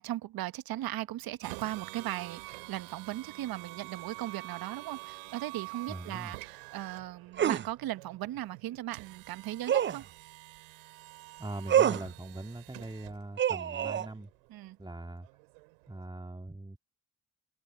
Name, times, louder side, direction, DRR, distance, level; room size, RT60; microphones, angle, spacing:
voice 1, 0.0-10.0 14.5-14.8, right 14 dB, 60° right, 1.3 m, -38 dB
sound 1, 1.4-16.0, right 32 dB, 80° right, 3.4 m, -48 dB
voice 2, 5.9-6.3 11.4-14.3 14.8-15.3 15.9-16.8, right 2 dB, 10° right, 2.3 m, -41 dB
sound 2, 7.4-7.7 9.7-10.0 11.7-12.1 13.4-14.1, right 10 dB, 30° right, 0.5 m, -26 dB
hypercardioid pair, 50°, 40 cm